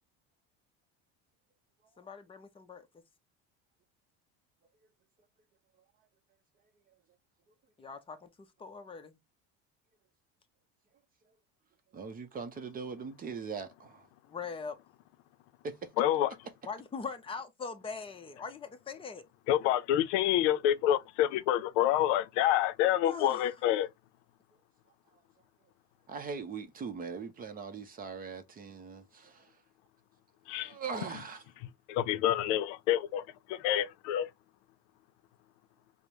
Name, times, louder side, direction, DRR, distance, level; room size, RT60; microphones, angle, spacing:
voice 1, 2.0-3.0 7.8-9.2 14.3-14.8 16.6-19.2 23.0-23.5, left 5 dB, 15° left, 0.6 m, -42 dB
voice 2, 11.9-14.1 15.6-15.9 26.1-29.6 30.5-31.4, right 5 dB, 25° right, 0.6 m, -41 dB
voice 3, 16.0-16.3 19.5-23.9 30.5-30.7 31.9-33.2 33.5-34.3, left 12 dB, 90° left, 0.5 m, -27 dB
5.1 x 2.1 x 2.9 m
cardioid pair, 135°, 34 cm